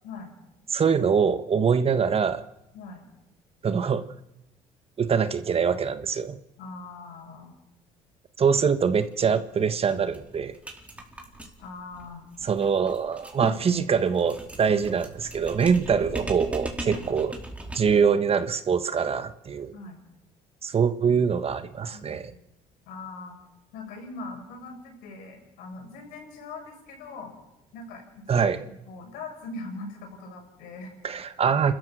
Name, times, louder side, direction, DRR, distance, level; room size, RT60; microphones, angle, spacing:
voice 1, 0.7-2.4 3.6-4.0 5.0-6.4 8.4-10.5 12.4-17.3 17.7-19.7 20.6-22.3 28.3-28.6 31.0-31.7, right 6 dB, 40° right, 11 dB, 1.3 m, -24 dB
voice 2, 2.7-3.1 6.6-7.5 11.6-12.3 13.4-14.3 14.7-14.8 16.8-17.1 19.7-20.0 21.9-22.2 22.9-23.4 23.7-27.3 27.7-30.9, left 3 dB, 75° left, 3 dB, 7.3 m, -41 dB
sound 1, 9.1-9.2 9.5-9.6 9.9-18.0, right 1 dB, 10° right, 4.3 m, -40 dB
29.0 x 13.5 x 7.6 m, 0.91 s
supercardioid pair, 75°, 15 cm